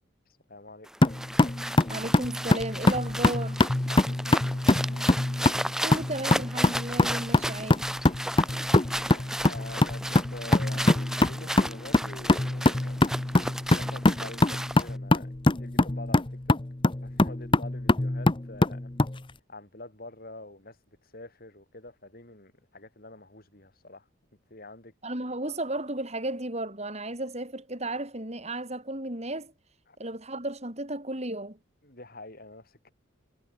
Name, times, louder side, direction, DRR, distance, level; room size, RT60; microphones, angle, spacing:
voice 1, 0.3-0.9 3.9-5.1 8.7-13.0 13.3-16.6 17.0-18.9 19.5-24.1 24.5-24.9 29.9-30.0 31.8-32.9, left 2 dB, 45° left, 6.0 m, -46 dB
sound 1, 0.9-15.0, right 1 dB, 5° right, 2.9 m, -35 dB
sound 2, 1.0-19.2, left 2 dB, 25° left, 0.8 m, -24 dB
voice 2, 1.9-3.6 5.8-7.9 25.0-29.5 30.0-31.6, right 1 dB, 30° right, 7.1 m, -34 dB
head